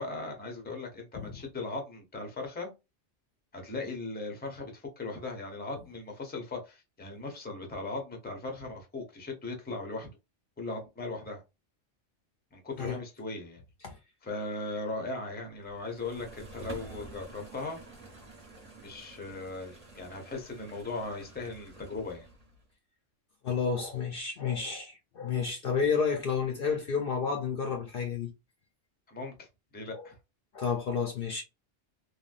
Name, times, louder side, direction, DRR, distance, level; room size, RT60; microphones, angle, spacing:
voice 1, 0.0-2.7 3.5-10.1 10.6-11.4 12.5-13.6 14.2-17.8 18.8-22.3 29.1-29.5 29.7-30.2, left 3 dB, 10° left, 0.6 m, -38 dB
sound 1, 15.6-22.6, right 2 dB, 35° right, 1.1 m, -49 dB
voice 2, 23.4-28.3 29.9-30.0 30.5-31.4, left 6 dB, 55° left, 0.7 m, -31 dB
3.4 x 2.2 x 2.5 m
omnidirectional pair, 1.2 m